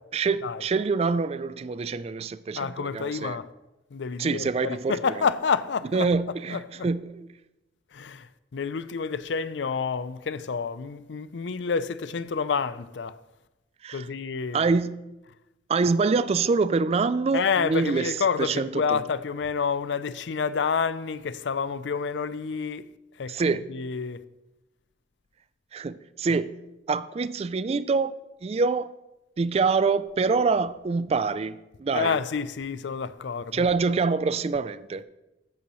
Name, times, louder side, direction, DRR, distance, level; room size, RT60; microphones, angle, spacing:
voice 1, 0.1-3.4 4.2-5.3 5.9-7.3 13.8-14.1 14.5-15.0 15.7-19.0 23.3-23.7 25.7-26.5 26.9-28.1 28.4-28.9 29.4-32.2 33.5-35.0, right 4 dB, 35° right, 0.3 m, -25 dB
voice 2, 2.6-3.5 3.9-6.1 6.5-6.9 7.9-8.3 8.5-13.1 13.9-14.7 17.3-22.9 23.2-24.2 31.9-33.7, left 5 dB, 75° left, 0.5 m, -29 dB
14.5 x 8.4 x 3.1 m
head